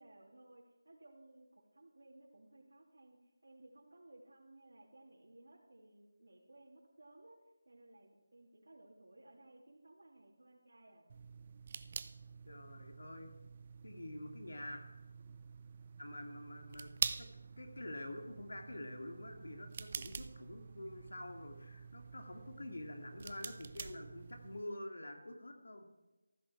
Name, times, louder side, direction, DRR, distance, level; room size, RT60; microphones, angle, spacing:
voice 1, 0.0-7.4 7.6-11.1, right 2 dB, 85° right, -4 dB, 2.9 m, -60 dB
sound 1, 11.1-24.6, right 5 dB, 25° right, 0.4 m, -47 dB
voice 2, 12.5-13.3 13.8-14.8 16.0-16.9 17.2-17.3 17.6-25.9, left 1 dB, 70° left, 4 dB, 2.2 m, -47 dB
14.5 x 13.0 x 4.7 m, 1.1 s
figure-of-eight pair, 175°, 0 cm